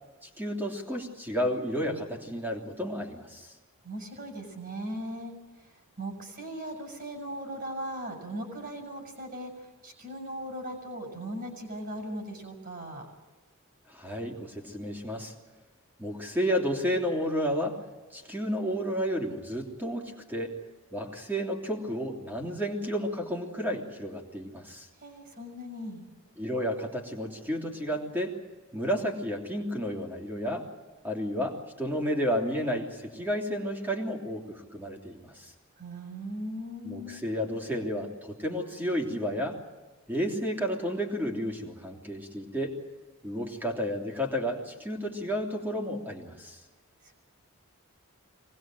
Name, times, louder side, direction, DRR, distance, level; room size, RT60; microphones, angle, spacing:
voice 1, 0.2-3.5 13.9-15.3 16.0-17.8 18.1-20.5 20.9-24.9 26.4-28.3 28.7-30.7 31.0-35.5 36.8-39.6 40.1-42.8 43.2-46.6, equal, 10° right, 0 dB, 3.1 m, -32 dB
voice 2, 3.8-13.1 25.0-26.0 35.8-37.2 47.0-47.2, right 1 dB, 40° right, 3 dB, 6.3 m, -39 dB
24.5 x 20.0 x 7.8 m, 1.3 s
head